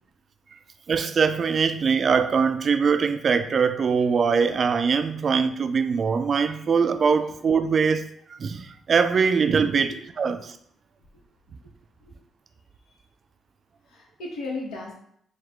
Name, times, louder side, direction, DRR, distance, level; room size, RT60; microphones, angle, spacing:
voice 1, 0.9-10.5, right 5 dB, 45° right, 0.3 m, -22 dB
voice 2, 13.9-14.9, left 2 dB, 85° left, 1.1 m, -35 dB
4.7 x 2.3 x 3.6 m
cardioid pair, 90°, 0 cm